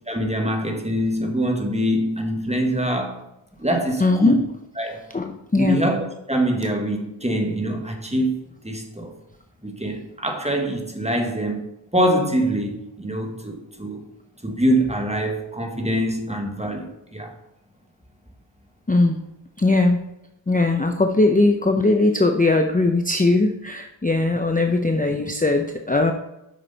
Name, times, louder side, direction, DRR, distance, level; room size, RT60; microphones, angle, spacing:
voice 1, 0.1-3.2 3.6-4.4 4.8-5.1 5.6-9.1 9.6-11.7 11.9-14.0 14.4-17.3, right 1 dB, 15° right, 1.4 m, -24 dB
voice 2, 4.0-4.4 5.1-5.8 18.9-19.2 19.6-20.0 20.5-26.1, left 2 dB, 20° left, 0.6 m, -19 dB
7.7 x 6.1 x 4.0 m
wide cardioid pair, 40°, 47 cm